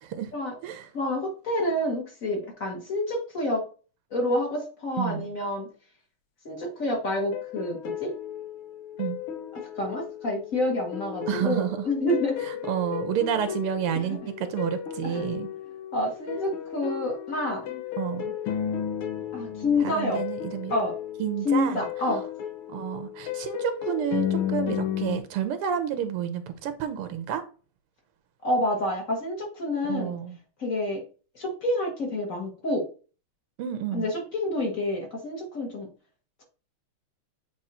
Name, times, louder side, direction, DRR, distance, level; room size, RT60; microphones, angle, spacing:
voice 1, 0.0-0.3 0.6-0.9 5.0-5.3 9.0-9.2 11.3-11.9 12.4-15.5 18.0-18.3 19.8-20.7 21.2-21.8 22.7-27.4 29.8-30.4 33.6-34.1, right 9 dB, 85° right, 1.7 m, -30 dB
voice 2, 0.9-3.7 4.1-5.7 6.5-8.1 9.5-12.4 14.0-14.2 15.0-15.2 15.9-17.8 19.3-20.2 20.7-20.9 21.4-22.2 28.4-30.1 30.6-31.0 31.4-32.9 33.9-35.9, left 1 dB, 40° left, 2.0 m, -28 dB
sound 1, 7.3-25.2, left 10 dB, 75° left, 1.8 m, -34 dB
8.0 x 3.1 x 4.2 m
omnidirectional pair, 2.4 m